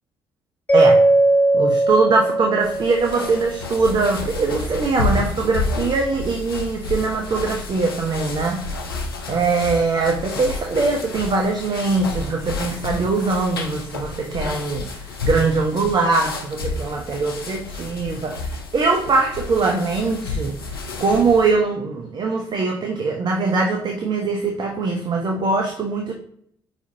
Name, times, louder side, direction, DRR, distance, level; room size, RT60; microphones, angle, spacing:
Mallet percussion, 0.7-3.7, right 2 dB, 15° left, 0.6 m, -18 dB
voice 1, 0.7-1.0 1.5-8.7 9.3-14.9 15.2-20.5 21.0-26.1, right 4 dB, 35° right, 2 dB, 0.6 m, -22 dB
sound 1, 2.6-21.6, left 3 dB, 85° left, 0.4 m, -30 dB
4.8 x 3.3 x 2.6 m, 0.66 s
figure-of-eight pair, 45°, 12 cm